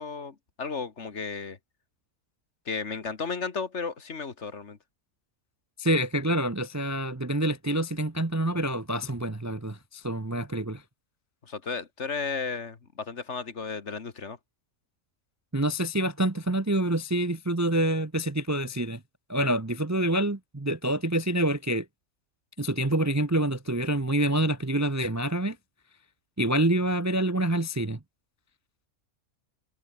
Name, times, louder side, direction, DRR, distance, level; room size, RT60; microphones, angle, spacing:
voice 1, 0.0-1.6 2.7-4.8 11.4-14.4, left 5 dB, 50° left, 1.9 m, -34 dB
voice 2, 5.8-10.8 15.5-19.0 19.3-21.8 22.6-25.6 26.4-28.0, right 1 dB, 15° right, 0.7 m, -27 dB
omnidirectional pair, 1.5 m